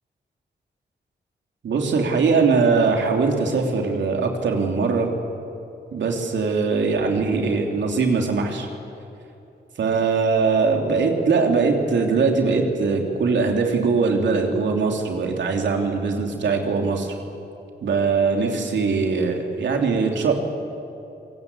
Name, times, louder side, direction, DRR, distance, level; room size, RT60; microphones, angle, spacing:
voice 1, 1.6-5.1 5.9-8.7 9.8-17.1 17.8-20.3, right 4 dB, 85° right, 2 dB, 3.1 m, -21 dB
26.5 x 19.0 x 8.3 m, 2.8 s
cardioid pair, 50°, 18 cm